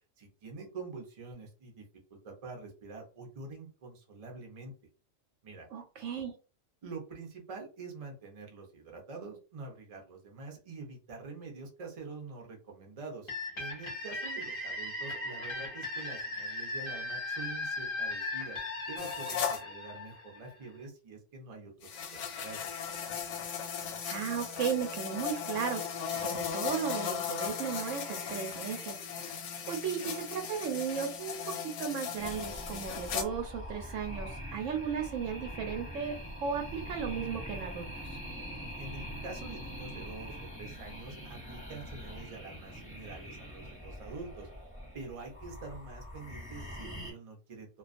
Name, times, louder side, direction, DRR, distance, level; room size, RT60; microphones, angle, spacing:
voice 1, 0.2-1.8 2.1-4.7 5.4-5.7 6.8-18.6 18.9-22.6 38.8-44.5 44.9-47.8, right 3 dB, 40° right, 1 dB, 0.5 m, -46 dB
voice 2, 5.7-6.3 24.1-29.4 29.7-38.2, right 7 dB, 75° right, 4 dB, 0.9 m, -36 dB
sound 1, 13.3-20.9, left 2 dB, 30° left, 0.5 m, -38 dB
sound 2, 19.0-19.6 21.8-33.2, left 7 dB, 90° left, 1.0 m, -37 dB
sound 3, 32.2-47.1, equal, 5° left, 0.9 m, -43 dB
2.3 x 2.3 x 2.4 m, 0.34 s
omnidirectional pair, 1.4 m